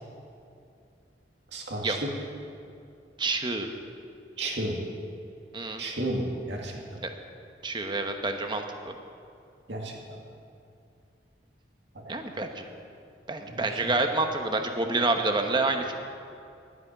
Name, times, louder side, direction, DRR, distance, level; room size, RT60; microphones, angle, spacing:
voice 1, 1.5-2.1 4.4-4.8 5.8-7.0 9.7-10.2 11.9-12.1 13.5-13.9, right 1 dB, 75° right, 0 dB, 2.4 m, -33 dB
voice 2, 3.2-3.7 5.5-5.8 7.6-8.9 12.1-12.6 13.3-16.0, right 3 dB, 25° right, 5 dB, 1.1 m, -28 dB
12.0 x 9.4 x 10.0 m, 2.5 s
head